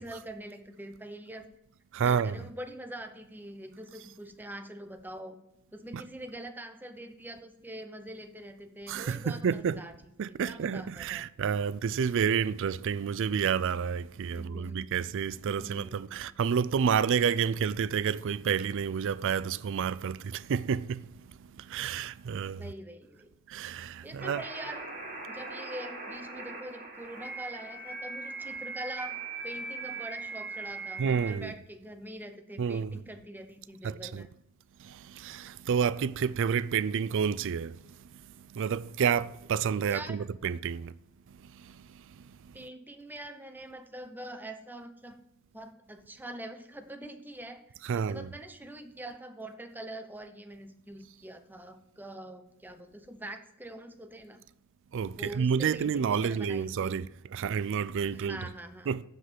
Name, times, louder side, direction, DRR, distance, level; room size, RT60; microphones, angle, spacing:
voice 1, 0.0-1.5 2.0-5.4 5.7-9.9 10.3-11.3 14.3-15.0 15.5-16.3 22.6-23.3 24.0-24.9 25.3-29.2 29.4-34.3 39.9-40.2 42.5-45.2 45.5-54.4 55.2-57.0 58.1-59.0, right 1 dB, 10° right, 0.9 m, -44 dB
voice 2, 1.9-2.4 5.9-6.0 8.9-9.8 10.2-22.6 23.5-24.4 31.0-31.5 32.6-33.0 33.8-34.3 34.8-40.9 41.4-42.5 47.8-48.3 54.9-58.4 58.9-59.1, right 7 dB, 60° right, 0.4 m, -30 dB
sound 1, 24.2-31.3, right 3 dB, 45° right, 4.6 m, -40 dB
14.5 x 5.3 x 7.9 m
head